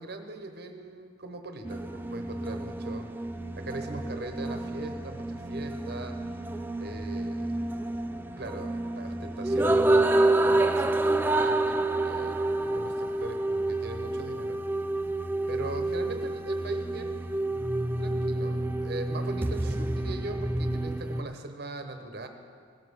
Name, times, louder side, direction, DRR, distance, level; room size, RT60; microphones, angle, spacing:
voice 1, 0.0-3.1 3.5-6.2 6.8-7.6 8.4-14.6 15.5-17.6 18.0-22.3, right 2 dB, 50° right, 6 dB, 0.9 m, -40 dB
sound 1, 1.6-21.2, right 2 dB, 10° right, 0.3 m, -28 dB
16.5 x 7.2 x 6.5 m, 2.2 s
head